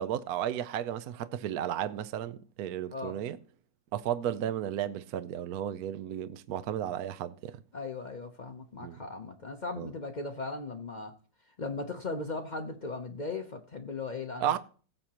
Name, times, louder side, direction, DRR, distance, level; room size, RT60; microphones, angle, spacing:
voice 1, 0.0-3.4 3.9-7.5 8.8-9.0 9.8-9.9 14.4-14.6, right 10 dB, 70° right, 0.9 m, -33 dB
voice 2, 7.7-11.1 11.6-14.6, left 3 dB, 80° left, 0.4 m, -38 dB
17.5 x 7.8 x 2.9 m
omnidirectional pair, 2.1 m